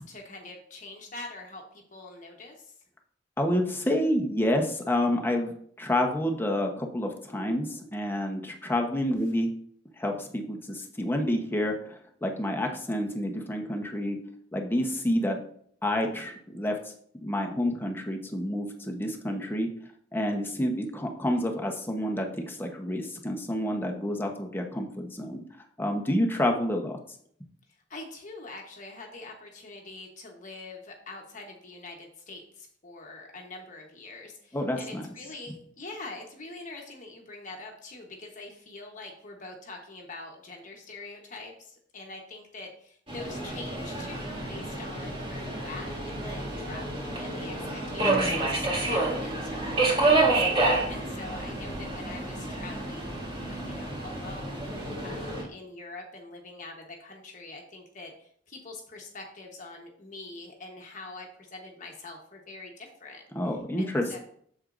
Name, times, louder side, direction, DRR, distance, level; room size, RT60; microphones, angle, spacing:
voice 1, 0.0-2.7 27.9-53.2 53.5-54.8 55.0-63.2 63.8-64.2, left 2 dB, 40° left, 1 dB, 1.2 m, -44 dB
voice 2, 3.4-9.5 10.0-14.2 14.5-15.4 15.8-19.7 20.1-25.4 25.8-27.0 34.5-35.0 48.0-48.4 63.3-64.2, left 1 dB, 10° left, 2 dB, 1.0 m, -29 dB
Subway metro underground, 43.1-55.4, right 2 dB, 25° right, 2.2 m, -29 dB
7.8 x 7.5 x 2.6 m, 0.62 s
head